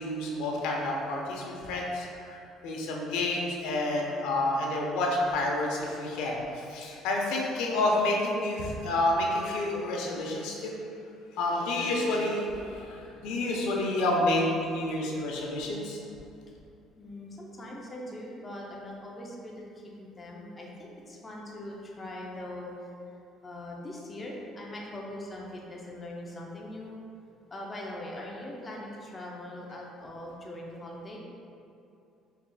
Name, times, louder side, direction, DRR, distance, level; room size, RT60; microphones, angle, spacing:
voice 1, 0.0-10.8 11.3-16.0, left 2 dB, 90° left, -2 dB, 0.6 m, -29 dB
voice 2, 17.0-19.6 20.0-22.7 23.4-27.0 27.5-31.2, left 1 dB, 15° left, -3 dB, 0.4 m, -41 dB
4.6 x 3.3 x 2.2 m, 2.6 s
cardioid pair, 160°, 0 cm